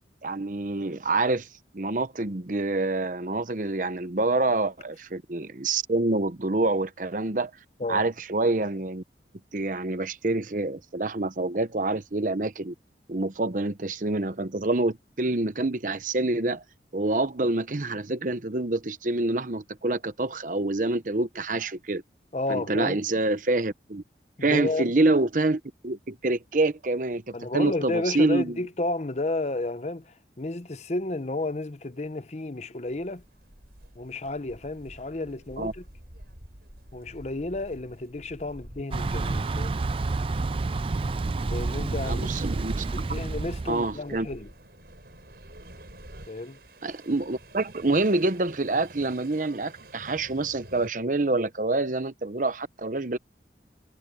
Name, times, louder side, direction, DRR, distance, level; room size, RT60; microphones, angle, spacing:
voice 1, 0.2-1.5 1.7-7.5 7.9-9.0 9.5-12.7 13.1-16.6 16.9-22.0 22.5-24.0 24.4-28.6 35.6-35.7 42.1-43.1 43.7-44.3 46.8-53.2, right 2 dB, 45° right, 0.9 m, -27 dB
voice 2, 22.3-23.0 24.4-24.9 27.3-33.2 33.9-35.8 36.9-39.8 41.4-42.3 42.9-44.5 46.3-46.6, left 2 dB, 40° left, 0.8 m, -32 dB
sound 1, 32.8-50.9, right 1 dB, 65° right, 5.6 m, -49 dB
Thunder / Bicycle, 38.9-44.0, right 3 dB, 30° right, 0.4 m, -29 dB
head